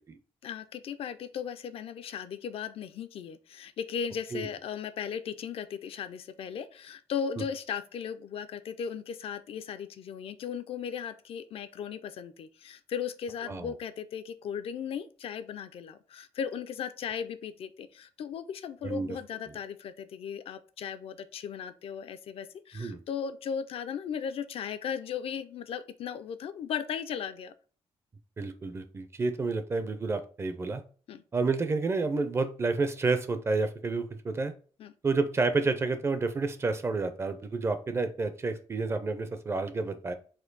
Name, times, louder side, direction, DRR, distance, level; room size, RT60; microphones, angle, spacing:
voice 1, 0.4-27.5 31.1-31.2 34.8-34.9, left 7 dB, 60° left, 11 dB, 0.4 m, -37 dB
voice 2, 18.8-19.2 22.7-23.0 28.4-30.8 31.3-34.5 35.0-40.1, right 3 dB, 25° right, 9 dB, 0.4 m, -30 dB
4.3 x 2.6 x 3.9 m, 0.40 s
wide cardioid pair, 175°, 11 cm